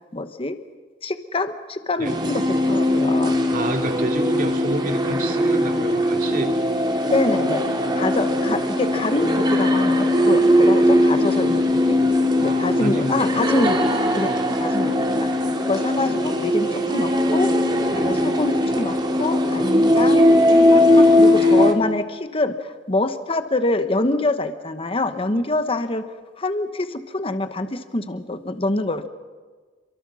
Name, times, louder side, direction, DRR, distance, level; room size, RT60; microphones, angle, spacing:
voice 1, 0.1-0.6 1.0-3.4 7.1-7.6 7.9-12.0 12.4-15.3 15.7-17.5 17.9-20.3 20.7-29.1, left 2 dB, 30° left, 9 dB, 1.1 m, -25 dB
sound 1, 2.0-21.7, left 1 dB, 25° right, 2.1 m, -19 dB
voice 2, 3.5-6.5 12.4-13.2 14.3-14.4 17.9-18.1, right 1 dB, 50° right, 3 dB, 2.7 m, -29 dB
28.0 x 23.5 x 6.3 m, 1.4 s
head